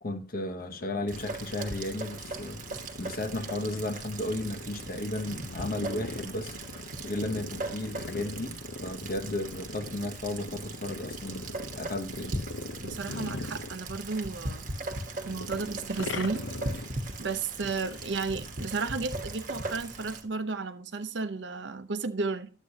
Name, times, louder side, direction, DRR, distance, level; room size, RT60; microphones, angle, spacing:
voice 1, 0.0-12.4, left 1 dB, 50° left, 1.0 m, -34 dB
sound 1, 0.6-14.4 14.7-18.6, left 3 dB, 85° left, 0.7 m, -42 dB
Rain, 1.1-20.2, right 2 dB, 45° right, 1.1 m, -39 dB
voice 2, 12.8-14.7 15.3-16.4 17.2-22.5, right 4 dB, 70° right, 0.7 m, -33 dB
11.0 x 8.2 x 2.8 m
head